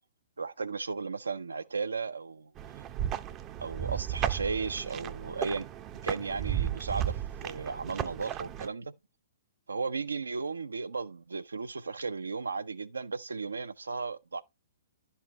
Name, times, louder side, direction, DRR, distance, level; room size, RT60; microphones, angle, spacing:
voice 1, 0.4-2.8 3.6-5.7 6.0-8.9 9.7-14.4, right 4 dB, 80° right, 0.6 m, -35 dB
sound 1, 2.6-8.7, right 11 dB, 30° right, 0.6 m, -34 dB
11.0 x 5.6 x 3.0 m
figure-of-eight pair, 120°, 0 cm